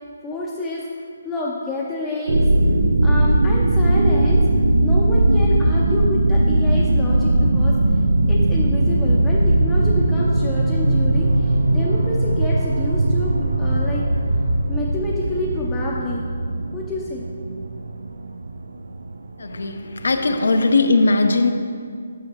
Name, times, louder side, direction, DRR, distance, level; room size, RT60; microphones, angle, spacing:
voice 1, 0.2-0.8 1.2-2.5 3.0-4.4 4.8-7.8 8.3-14.0 14.7-16.3 16.7-17.2 20.4-20.5, left 2 dB, 10° left, -5 dB, 0.5 m, -28 dB
sound 1, 2.3-19.6 20.0-20.1, right 1 dB, 90° right, 0.4 m, -19 dB
voice 2, 19.4-21.5, left 3 dB, 80° left, 7 dB, 0.6 m, -18 dB
9.1 x 6.3 x 3.0 m, 2.3 s
hypercardioid pair, 165°, 0 cm